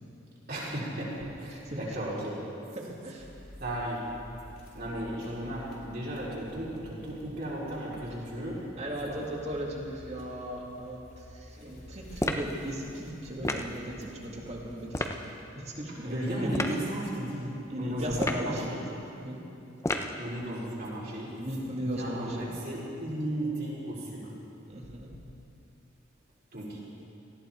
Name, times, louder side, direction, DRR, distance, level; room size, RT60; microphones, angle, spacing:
voice 1, 0.5-2.4 3.6-4.0 4.7-8.6 9.0-9.2 15.1-15.2 15.9-18.8 20.2-21.3 21.7-24.3 26.5-26.8, right 1 dB, 50° right, -7 dB, 4.3 m, -35 dB
sound 1, 3.2-14.9, left 1 dB, 45° left, 2.7 m, -51 dB
voice 2, 8.8-15.1 15.5-16.5 16.8-16.9 17.7-18.7 19.2-19.4 21.4-22.5 24.7-25.1, equal, 35° right, -1 dB, 2.1 m, -37 dB
sound 2, 12.2-12.5 13.4-13.7 14.9-15.2 16.5-16.8 18.1-18.5 19.8-20.2, left 1 dB, 15° left, 0.7 m, -30 dB
18.5 x 14.5 x 4.5 m, 2.7 s
head